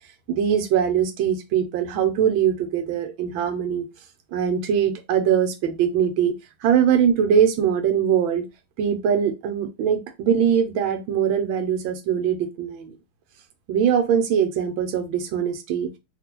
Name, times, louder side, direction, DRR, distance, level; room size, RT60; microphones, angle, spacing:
voice 1, 0.3-3.9 4.3-6.3 6.6-8.4 8.8-12.9 13.7-15.9, right 8 dB, 80° right, 7 dB, 1.4 m, -22 dB
3.0 x 2.7 x 2.9 m, 0.24 s
omnidirectional pair, 2.2 m